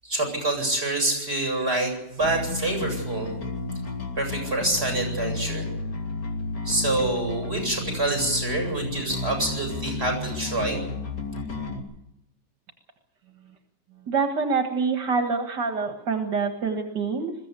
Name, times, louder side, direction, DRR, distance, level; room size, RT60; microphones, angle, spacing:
voice 1, 0.0-3.3 4.2-5.7 6.6-10.8, right 2 dB, 35° right, 3 dB, 8.5 m, -26 dB
Bass guitar, 2.2-11.8, left 3 dB, 70° left, 3.5 m, -32 dB
voice 2, 14.1-17.3, right 5 dB, 75° right, 4 dB, 2.4 m, -26 dB
21.5 x 16.0 x 8.4 m, 0.86 s
omnidirectional pair, 1.8 m